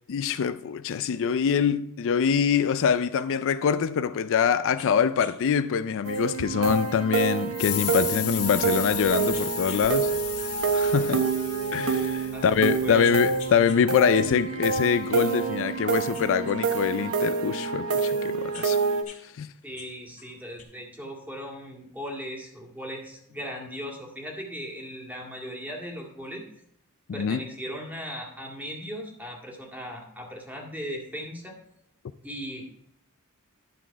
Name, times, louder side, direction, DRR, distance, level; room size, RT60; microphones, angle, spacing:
voice 1, 0.1-10.1 10.7-11.2 11.7-18.8 19.4-19.5 27.2-27.4, left 7 dB, 60° left, 0.4 m, -24 dB
sound 1, 4.8-4.9 5.2-5.3 6.1-8.8 9.3-9.9 10.2-11.6 12.1-12.2 12.7-13.8 14.2-15.7 16.1-17.5 18.1-19.2 19.5-20.6, left 7 dB, 35° left, 2.2 m, -48 dB
sound 2, 6.0-19.0, right 5 dB, 70° right, 1.0 m, -27 dB
sound 3, 7.5-12.8, left 10 dB, 90° left, 1.9 m, -34 dB
voice 2, 19.6-26.4 27.1-31.5 32.2-32.7, equal, 10° right, 2.0 m, -38 dB
11.0 x 6.3 x 4.5 m
head